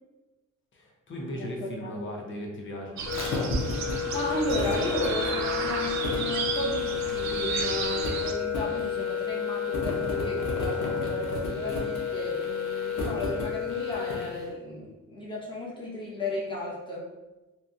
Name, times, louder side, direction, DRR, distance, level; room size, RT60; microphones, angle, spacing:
voice 1, 0.7-3.1, equal, 40° left, 0 dB, 0.7 m, -37 dB
sound 1, 3.0-8.3, right 5 dB, 65° right, 0.5 m, -33 dB
sound 2, 3.1-14.4, left 6 dB, 85° left, 0.7 m, -30 dB
voice 2, 4.1-17.1, left 1 dB, 15° left, -6 dB, 0.9 m, -34 dB
2.8 x 2.4 x 2.4 m, 1.1 s
cardioid pair, 90°, 30 cm